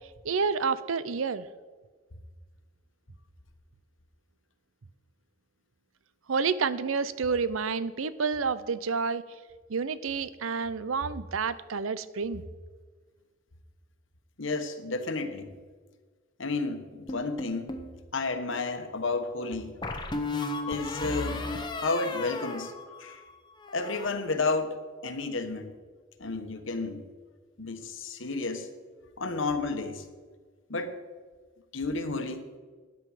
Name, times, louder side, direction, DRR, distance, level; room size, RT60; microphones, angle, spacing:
voice 1, 0.2-1.5 6.3-9.2 9.7-12.4, right 5 dB, 85° right, 16 dB, 0.6 m, -29 dB
voice 2, 14.4-15.6 16.4-17.8 18.1-19.8 20.6-21.4 21.7-22.7 23.0-23.2 23.7-25.8 26.2-27.1 27.6-28.7 29.2-30.0 30.7-31.0 31.7-32.5, left 3 dB, 70° left, 7 dB, 1.2 m, -31 dB
sound 1, 17.1-17.9 19.8-23.3 23.6-24.1, left 2 dB, 20° left, 0.9 m, -35 dB
13.0 x 9.9 x 4.9 m, 1.4 s
head